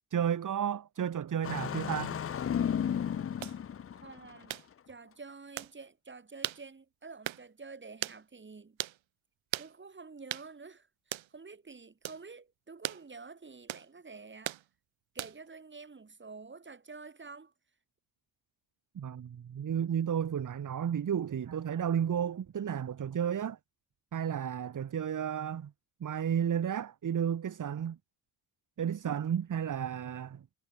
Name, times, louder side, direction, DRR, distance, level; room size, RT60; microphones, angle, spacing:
voice 1, 0.1-2.2 18.9-23.6 24.1-25.7 26.0-28.0 28.8-30.4, right 8 dB, 40° right, 1.5 m, -32 dB
Engine starting, 1.4-4.5, left 8 dB, 30° left, 0.6 m, -33 dB
sound 1, 3.4-3.6 4.5-4.7 5.6-5.7 6.4-6.6 7.2-7.4 8.0-8.2 8.8-9.0 9.5-9.7 10.3-10.5 11.1-11.3 12.0-12.2 12.8-13.0 13.7-13.9 14.4-14.6 15.2-15.5, right 13 dB, 70° right, 3.1 m, -37 dB
voice 2, 4.0-4.6 4.9-8.8 9.6-14.5 15.1-17.5, right 4 dB, 25° right, 3.7 m, -49 dB
cardioid pair, 100°, 49 cm